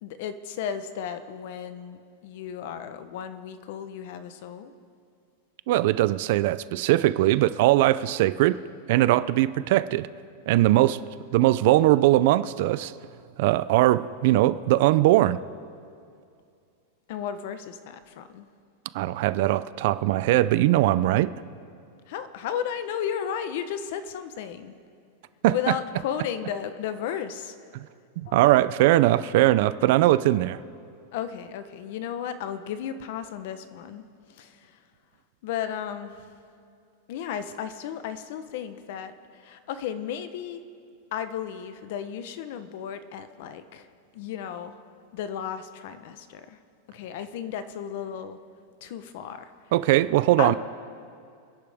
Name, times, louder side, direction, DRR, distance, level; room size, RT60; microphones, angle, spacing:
voice 1, 0.0-4.7 17.1-18.5 22.1-24.7 25.5-27.5 28.3-28.4 31.1-34.0 34.3-34.7 35.4-36.2 37.1-40.6 41.1-43.9 44.1-44.7 45.1-46.6 46.9-48.4 48.8-49.5 50.4-50.6, left 8 dB, 55° left, 11 dB, 0.9 m, -34 dB
voice 2, 5.7-8.6 8.9-10.1 10.5-11.0 11.3-12.9 13.4-15.4 18.9-21.3 25.4-25.5 27.7-27.8 28.2-30.6 49.7-50.5, right 16 dB, 50° right, 15 dB, 0.4 m, -20 dB
27.5 x 10.5 x 3.5 m, 2.4 s
supercardioid pair, 165°, 0 cm